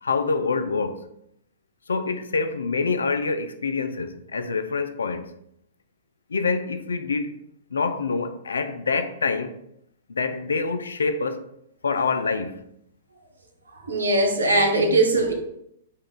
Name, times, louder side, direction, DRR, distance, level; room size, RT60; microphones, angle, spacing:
voice 1, 0.0-1.1 1.9-5.3 6.3-7.3 7.7-9.6 10.1-11.5 11.8-12.6, left 4 dB, 90° left, 0.4 m, -26 dB
voice 2, 13.9-15.3, right 2 dB, 85° right, 0.9 m, -20 dB
5.5 x 2.5 x 3.7 m
hypercardioid pair, 125°, 0 cm